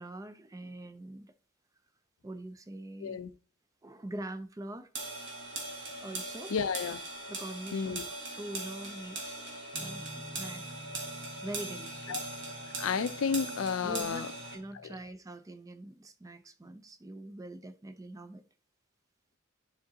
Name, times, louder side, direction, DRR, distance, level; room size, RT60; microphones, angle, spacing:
voice 1, 0.0-1.3 2.2-3.2 3.8-4.9 6.0-6.5 7.3-10.6 11.4-12.3 13.8-18.4, right 1 dB, 15° right, 0.3 m, -44 dB
sound 1, 4.9-14.6, right 2 dB, 60° right, 1.6 m, -40 dB
voice 2, 6.5-7.0 7.7-8.0 12.1-12.2 12.8-14.3 14.8-14.9, left 6 dB, 70° left, 0.4 m, -32 dB
Guitar, 9.7-15.0, right 1 dB, 75° right, 2.6 m, -50 dB
10.5 x 3.8 x 2.7 m
head